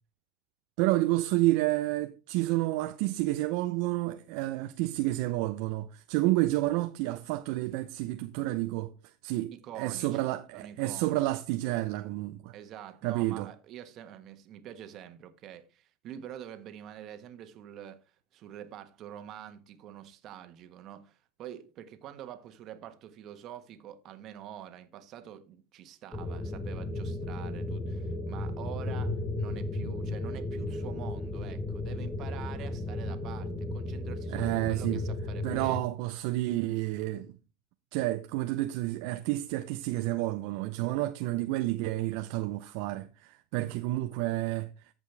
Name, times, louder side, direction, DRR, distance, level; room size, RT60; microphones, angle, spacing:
voice 1, 0.8-9.5 9.8-12.5 13.0-13.5 34.3-35.0 35.4-37.3 37.9-44.7, right 17 dB, 65° right, 0.6 m, -30 dB
voice 2, 9.5-10.2 10.5-11.2 12.5-35.8, right 10 dB, 50° right, 1.4 m, -46 dB
sound 1, 26.1-35.8, left 2 dB, 15° left, 1.0 m, -34 dB
14.5 x 5.3 x 3.4 m
hypercardioid pair, 95°, 0 cm